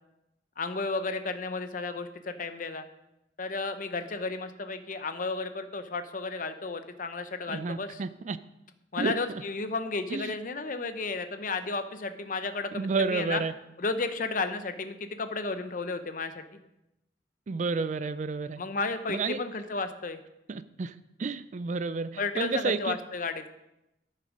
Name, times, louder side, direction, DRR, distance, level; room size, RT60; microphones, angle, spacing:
voice 1, 0.6-2.9 3.4-8.0 8.9-13.4 13.8-16.6 18.6-20.2 22.2-23.5, left 3 dB, 45° left, 9 dB, 0.7 m, -33 dB
voice 2, 7.5-8.4 9.0-9.2 10.1-10.3 12.7-13.5 17.5-18.6 19.1-19.4 20.5-20.9 21.2-23.0, right 4 dB, 40° right, 14 dB, 0.4 m, -30 dB
10.5 x 6.6 x 5.1 m, 0.91 s
head